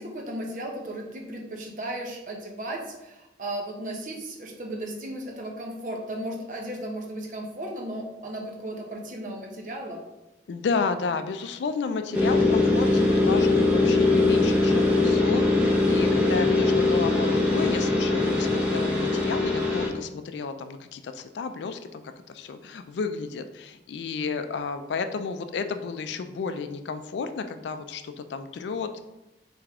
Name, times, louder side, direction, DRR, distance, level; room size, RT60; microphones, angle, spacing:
voice 1, 0.0-10.0, right 1 dB, 45° right, 1 dB, 0.7 m, -35 dB
voice 2, 10.5-22.0 22.3-29.0, left 5 dB, 85° left, 9 dB, 0.3 m, -32 dB
sound 1, 12.1-19.9, left 2 dB, 10° right, 0.7 m, -21 dB
3.4 x 3.3 x 3.6 m, 0.95 s
head